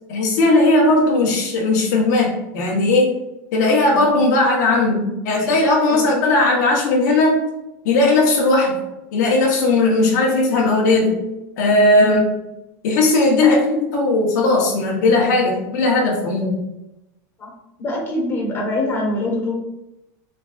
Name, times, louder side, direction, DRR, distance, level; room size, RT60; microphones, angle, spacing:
voice 1, 0.1-3.1 3.5-7.4 7.8-8.8 9.1-11.2 11.6-12.2 12.8-16.7, left 2 dB, 75° left, -2 dB, 0.9 m, -17 dB
voice 2, 17.8-19.5, left 2 dB, 25° left, -2 dB, 1.3 m, -24 dB
3.5 x 3.3 x 2.4 m, 0.91 s
supercardioid pair, 140°, 10 cm